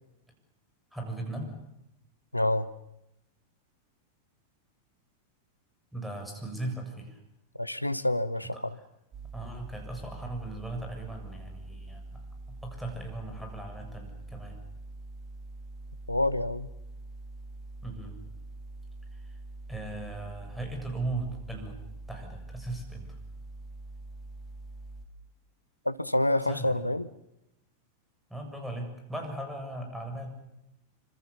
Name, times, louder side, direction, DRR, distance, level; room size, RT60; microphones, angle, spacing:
voice 1, 0.9-1.5 5.9-7.2 8.5-8.6 9.3-14.6 17.8-18.2 19.1-19.3 19.7-21.8 22.1-23.2 26.5-26.8 28.3-30.3, right 2 dB, ahead, 3 dB, 7.2 m, -38 dB
voice 2, 2.3-2.7 7.6-8.8 16.1-16.7 25.8-27.1, left 1 dB, 85° left, 14 dB, 1.0 m, -27 dB
sound 1, 9.1-25.1, right 2 dB, 25° right, 3.3 m, -44 dB
27.0 x 25.5 x 7.2 m, 0.87 s
figure-of-eight pair, 90°, 0 cm